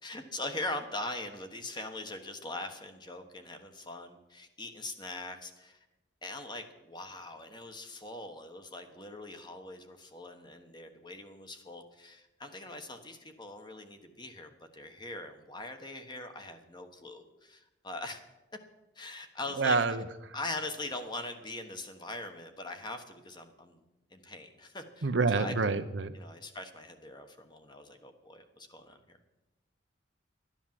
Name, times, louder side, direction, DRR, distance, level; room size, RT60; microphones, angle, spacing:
voice 1, 0.0-5.8 6.2-18.3 18.9-19.8 20.3-23.8 24.1-25.8 26.1-29.2, left 2 dB, 25° left, 6 dB, 1.2 m, -42 dB
voice 2, 19.6-20.3 25.0-26.1, right 4 dB, 65° right, 10 dB, 0.8 m, -28 dB
13.0 x 10.0 x 7.5 m, 1.0 s
head